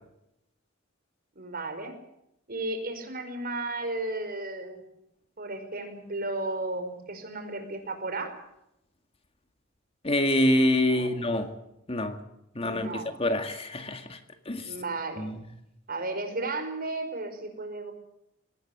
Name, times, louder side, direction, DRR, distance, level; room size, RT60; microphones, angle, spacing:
voice 1, 1.4-2.0 2.5-4.8 5.4-8.3 10.9-11.2 12.6-13.1 14.6-15.3 15.9-17.9, right 2 dB, 45° right, 7 dB, 5.3 m, -34 dB
voice 2, 10.0-11.5 11.9-12.2 12.6-14.2 14.5-14.7 15.2-15.3, left 1 dB, 30° left, 7 dB, 2.0 m, -26 dB
23.0 x 19.0 x 8.1 m, 0.84 s
head